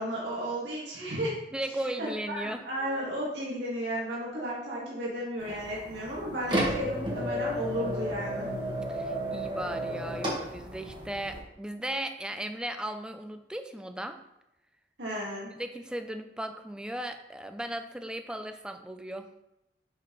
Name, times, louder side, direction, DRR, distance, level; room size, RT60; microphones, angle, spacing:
voice 1, 0.0-1.4 2.0-8.5 15.0-15.5, equal, 85° right, -6 dB, 1.9 m, -34 dB
voice 2, 1.5-2.6 8.9-14.2 15.6-19.3, right 1 dB, 5° right, 7 dB, 0.4 m, -36 dB
sound 1, 5.4-11.4, equal, 30° right, 1.3 m, -33 dB
6.9 x 5.4 x 3.1 m, 0.87 s
head